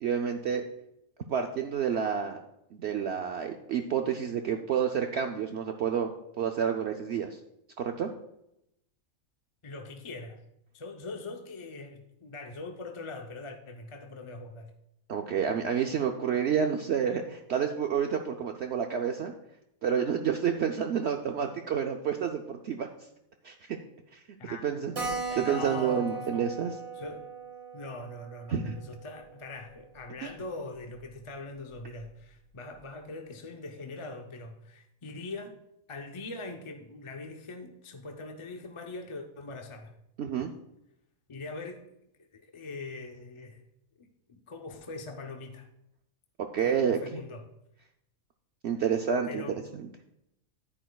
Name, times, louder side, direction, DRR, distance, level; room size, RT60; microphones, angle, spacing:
voice 1, 0.0-0.6 1.3-2.4 2.7-6.1 6.4-7.4 7.8-8.1 15.1-19.3 19.8-22.9 23.4-23.8 24.1-24.2 24.6-26.7 28.5-28.8 30.2-30.3 40.2-40.5 46.5-47.2 48.6-49.4, right 7 dB, 60° right, 4 dB, 0.8 m, -29 dB
voice 2, 9.6-10.4 10.7-14.7 24.4-24.6 25.3-26.5 26.9-27.3 27.7-35.6 35.9-39.9 41.3-41.8 42.2-43.6 44.0-45.7 46.6-47.5 49.3-49.6, left 3 dB, 35° left, 3 dB, 0.5 m, -42 dB
Keyboard (musical), 25.0-30.0 30.3-30.4 30.7-30.8 31.0-31.1 31.7-32.0, right 4 dB, 80° right, 2.8 m, -39 dB
10.5 x 10.0 x 2.3 m, 0.81 s
omnidirectional pair, 1.4 m